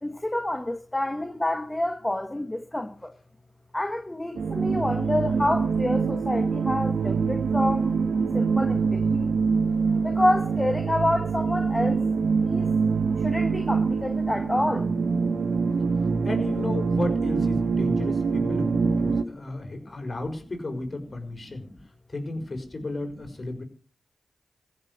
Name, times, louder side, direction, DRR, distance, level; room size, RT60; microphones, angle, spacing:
voice 1, 0.0-3.1 3.7-7.9 8.3-9.3 10.0-12.0 12.4-12.8 13.2-14.9 16.0-16.1, left 1 dB, 15° left, 1.8 m, -28 dB
sound 1, 4.3-19.2, right 5 dB, 80° right, 1.2 m, -24 dB
voice 2, 16.2-21.7 22.1-23.6, left 2 dB, 45° left, 5.4 m, -33 dB
15.5 x 7.2 x 9.6 m
cardioid pair, 45°, 0 cm